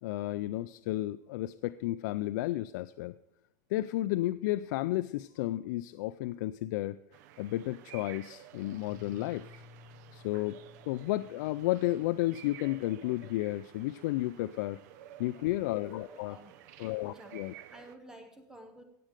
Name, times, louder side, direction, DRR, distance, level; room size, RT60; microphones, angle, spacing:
voice 1, 0.0-3.1 3.7-7.0 7.4-9.6 10.1-10.6 10.9-14.8 15.2-16.4 16.8-17.5, left 16 dB, 80° left, 13 dB, 0.4 m, -32 dB
sound 1, 7.1-18.0, right 12 dB, 70° right, 0.6 m, -53 dB
Piano, 8.9-14.5, left 4 dB, 35° left, 5.8 m, -57 dB
voice 2, 16.0-16.5 17.0-18.8, right 1 dB, 5° right, 6 dB, 0.8 m, -52 dB
16.5 x 7.6 x 5.1 m, 0.83 s
cardioid pair, 175°, 10 cm